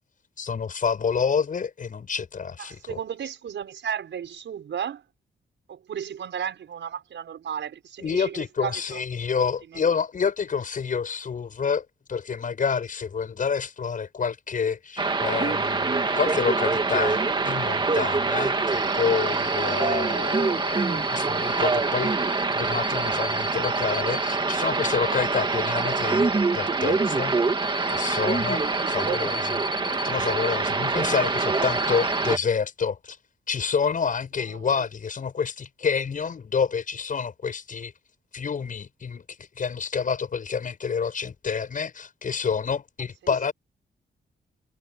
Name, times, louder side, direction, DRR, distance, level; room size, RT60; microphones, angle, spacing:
voice 1, 0.4-3.0 8.0-17.2 17.4-22.2 22.5-27.4 27.9-29.6 30.0-33.2 33.5-37.9 38.3-43.5, left 6 dB, 45° left, 7.7 m, -28 dB
voice 2, 2.6-5.0 5.7-9.0 9.3-9.5 31.8-31.9 34.5-34.8 43.2-43.3, right 8 dB, 80° right, 6.5 m, -34 dB
sound 1, 15.0-32.4, right 3 dB, 25° right, 2.1 m, -25 dB
wide cardioid pair, 180°, 19 cm